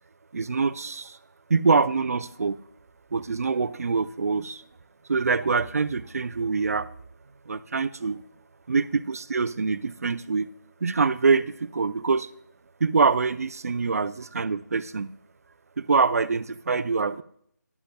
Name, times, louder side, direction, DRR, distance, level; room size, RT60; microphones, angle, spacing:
voice 1, 0.3-1.2 1.5-2.6 3.1-4.6 5.1-6.9 7.5-8.2 8.7-10.5 10.8-12.3 12.8-15.1 15.8-17.2, right 4 dB, 50° right, 15 dB, 0.5 m, -24 dB
12.5 x 11.5 x 2.2 m, 0.68 s
figure-of-eight pair, 165°, 10 cm